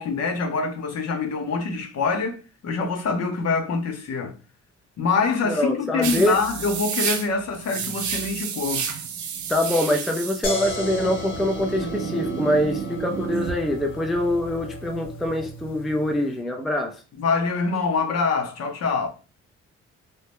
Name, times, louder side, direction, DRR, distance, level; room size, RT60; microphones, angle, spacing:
voice 1, 0.0-2.4 2.6-4.3 5.0-8.9 17.2-19.1, left 4 dB, 55° left, 0.7 m, -25 dB
voice 2, 5.4-6.4 9.5-17.0, left 1 dB, ahead, 0.4 m, -24 dB
sound 1, 6.0-13.5, right 7 dB, 70° right, 0.6 m, -30 dB
sound 2, 10.4-16.2, left 1 dB, 90° left, 1.1 m, -35 dB
2.7 x 2.1 x 3.4 m
cardioid pair, 90°, 30 cm